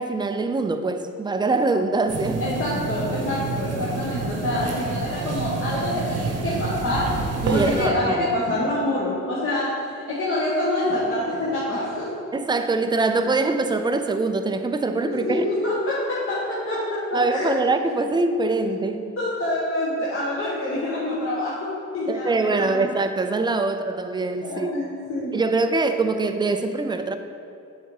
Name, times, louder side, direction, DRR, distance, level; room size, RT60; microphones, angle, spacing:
voice 1, 0.0-2.4 7.4-8.3 12.3-15.4 17.1-19.1 22.1-24.7 25.3-27.2, right 3 dB, 15° right, 0.4 m, -23 dB
sound 1, 2.1-7.9, right 3 dB, 55° right, 1.0 m, -28 dB
voice 2, 2.4-12.3 15.0-17.5 19.2-22.8 24.4-25.4, left 1 dB, 45° left, 1.4 m, -26 dB
7.0 x 4.1 x 4.8 m
cardioid pair, 90°, 30 cm